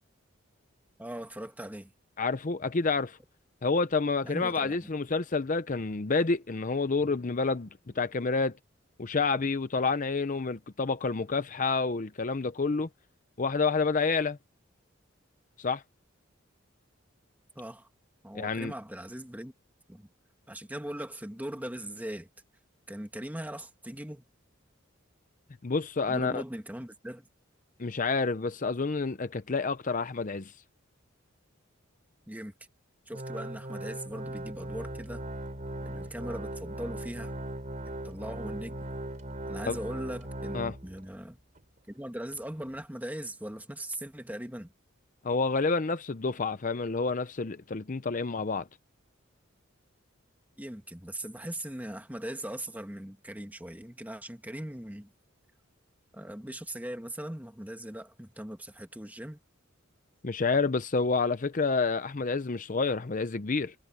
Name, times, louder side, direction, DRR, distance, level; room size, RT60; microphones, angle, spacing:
voice 1, 1.0-1.9 4.2-4.9 17.6-17.9 18.2-19.5 19.9-20.1 20.5-22.3 22.9-24.2 26.1-27.3 32.3-32.5 33.1-35.2 35.9-37.3 38.0-38.9 39.5-41.4 41.9-44.7 50.6-55.1 56.1-59.4, right 1 dB, 10° right, 1.6 m, -40 dB
voice 2, 2.2-3.2 3.6-7.7 8.0-8.6 9.0-12.9 13.4-14.4 15.6-15.8 18.3-18.7 25.6-26.4 27.8-30.5 39.7-39.8 40.5-40.7 45.2-48.7 60.2-63.7, left 4 dB, 40° left, 0.6 m, -29 dB
Organ, 33.1-41.1 41.6-41.7 42.3-42.4, right 1 dB, 40° right, 3.5 m, -39 dB
head